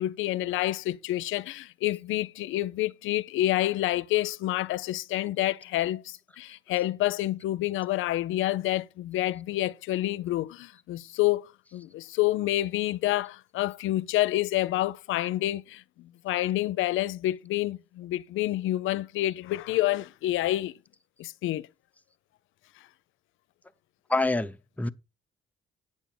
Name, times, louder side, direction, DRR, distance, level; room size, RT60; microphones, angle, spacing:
voice 1, 0.0-20.7 21.2-21.7, left 15 dB, 85° left, 0.5 m, -28 dB
voice 2, 24.1-24.9, left 2 dB, 5° left, 0.6 m, -26 dB
9.0 x 7.4 x 4.3 m
cardioid pair, 90°, 20 cm